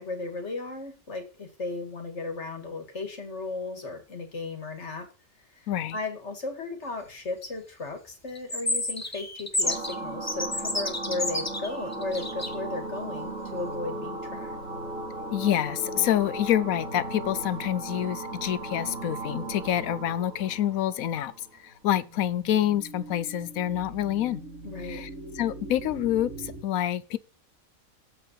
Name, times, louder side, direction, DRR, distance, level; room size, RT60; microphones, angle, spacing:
voice 1, 0.0-5.1 5.4-14.5 24.6-25.1, left 3 dB, 55° left, 2.3 m, -35 dB
voice 2, 5.7-6.0 15.3-24.4 24.8-25.1 25.4-27.2, left 11 dB, 85° left, 1.1 m, -27 dB
sound 1, 8.3-9.9 10.3-12.5, left 2 dB, 15° left, 1.0 m, -29 dB
sound 2, 9.6-21.6 22.0-26.6, right 2 dB, 75° right, 2.7 m, -38 dB
7.7 x 6.8 x 5.6 m
omnidirectional pair, 1.4 m